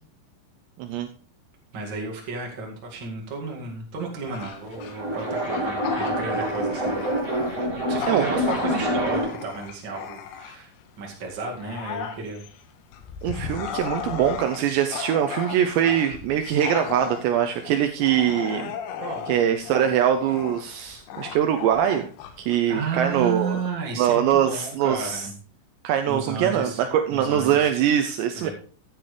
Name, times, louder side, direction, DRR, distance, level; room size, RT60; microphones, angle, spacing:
voice 1, 1.7-7.0 7.9-10.7 11.0-12.4 19.0-19.3 22.7-25.3 26.1-26.8 27.1-27.7 28.4-28.5, right 4 dB, 50° right, -1 dB, 1.3 m, -32 dB
Bark / Growling, 4.2-10.8 11.3-23.2, left 8 dB, 90° left, 3.9 m, -36 dB
sound 1, 4.6-9.5, equal, 15° right, 3.7 m, -26 dB
voice 2, 8.1-8.4 13.2-18.8 19.3-22.1 22.4-23.6 24.0-25.3 25.8-28.5, right 10 dB, 90° right, 6 dB, 2.5 m, -23 dB
14.0 x 9.4 x 3.3 m, 0.43 s
omnidirectional pair, 5.8 m